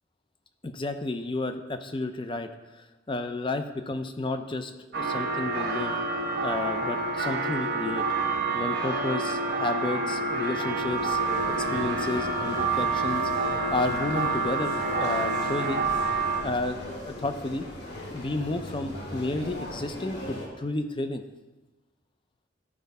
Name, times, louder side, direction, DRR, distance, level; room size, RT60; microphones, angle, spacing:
voice 1, 0.6-5.9 6.4-8.1 8.5-11.2 11.6-13.3 13.7-14.7 15.0-15.8 16.4-17.7 18.1-21.2, left 2 dB, 25° left, 8 dB, 0.6 m, -31 dB
sound 1, 4.9-16.4, right 3 dB, 55° right, 1.2 m, -28 dB
sound 2, 10.6-20.5, left 1 dB, 60° left, 2.2 m, -39 dB
12.5 x 4.6 x 5.4 m, 1.2 s
head